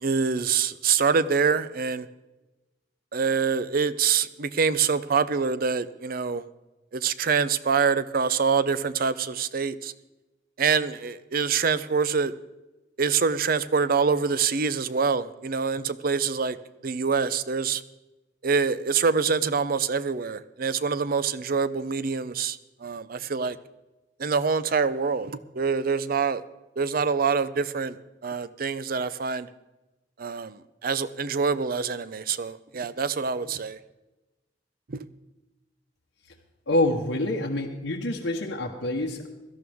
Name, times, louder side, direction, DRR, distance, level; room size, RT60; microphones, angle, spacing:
voice 1, 0.0-2.1 3.1-6.4 6.9-9.9 10.6-12.3 13.0-16.6 16.8-17.8 18.4-23.6 24.2-26.4 26.8-28.0 28.2-29.5 30.2-33.8 34.9-35.0, right 5 dB, 50° right, 15 dB, 0.6 m, -25 dB
voice 2, 36.7-39.3, left 1 dB, 80° left, -1 dB, 1.2 m, -26 dB
17.0 x 12.5 x 3.6 m, 1.1 s
head